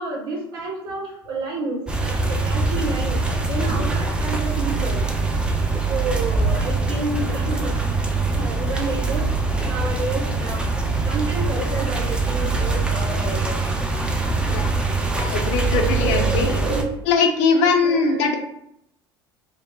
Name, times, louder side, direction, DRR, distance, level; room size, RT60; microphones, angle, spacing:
voice 1, 0.0-5.0 5.9-7.8 8.3-10.6 11.1-13.6 14.9-15.4 15.7-16.9 17.5-18.4, right 2 dB, 75° right, -1 dB, 0.7 m, -30 dB
sound 1, 1.9-16.8, right 3 dB, 5° right, 0.3 m, -23 dB
voice 2, 15.1-16.5 17.1-18.4, left 5 dB, 55° left, 3 dB, 0.5 m, -20 dB
2.1 x 2.0 x 3.1 m, 0.76 s
hypercardioid pair, 70°, 13 cm